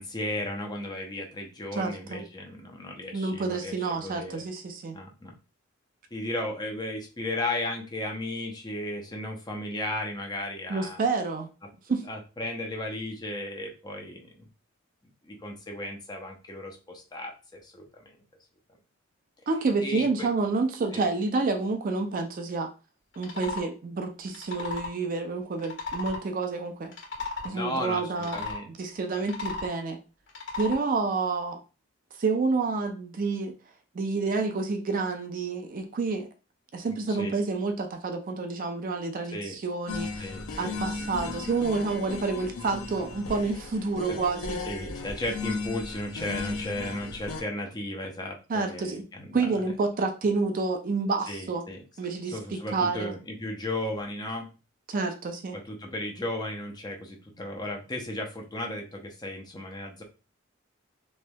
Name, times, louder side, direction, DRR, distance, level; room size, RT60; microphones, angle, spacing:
voice 1, 0.0-4.5 4.9-5.3 6.1-11.0 12.0-14.5 15.2-18.2 19.8-20.3 20.9-21.0 27.4-28.7 36.8-37.3 39.3-39.6 40.2-40.8 44.0-44.2 44.6-49.6 51.3-51.8 52.3-54.5 55.5-60.0, left 1 dB, 20° left, 2 dB, 0.7 m, -35 dB
voice 2, 1.8-2.2 3.1-5.0 10.7-11.5 11.9-12.0 19.5-22.7 23.2-26.9 27.4-28.4 28.8-30.0 30.6-31.6 32.2-33.5 33.9-36.3 36.7-40.3 40.6-44.6 48.5-49.0 49.3-51.6 52.0-53.1 54.9-55.6, right 3 dB, 40° right, 6 dB, 0.4 m, -29 dB
sound 1, 23.1-23.7 24.3-24.9 25.6-26.2 26.8-27.5 28.2-28.6 29.2-29.7 30.3-30.8, left 3 dB, 60° left, 1.4 m, -35 dB
sound 2, 39.9-47.4, left 3 dB, 90° left, 0.5 m, -36 dB
3.2 x 3.0 x 2.2 m, 0.33 s
head